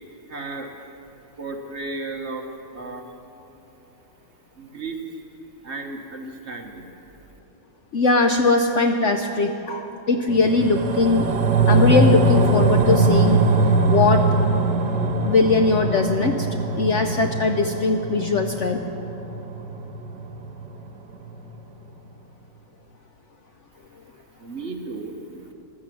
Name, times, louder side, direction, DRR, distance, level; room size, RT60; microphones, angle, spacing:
voice 1, 0.3-0.7 1.4-2.5 2.7-3.1 4.6-5.0 5.6-6.9 24.4-25.5, right 3 dB, 45° right, 2 dB, 1.4 m, -34 dB
voice 2, 7.9-11.3 11.7-13.4 13.9-14.2 15.2-16.5 16.8-18.8, left 3 dB, 60° left, 5 dB, 0.8 m, -20 dB
sound 1, 10.3-20.9 21.3-21.4, right 2 dB, 75° right, 1.7 m, -21 dB
15.0 x 12.5 x 7.6 m, 3.0 s
omnidirectional pair, 1.8 m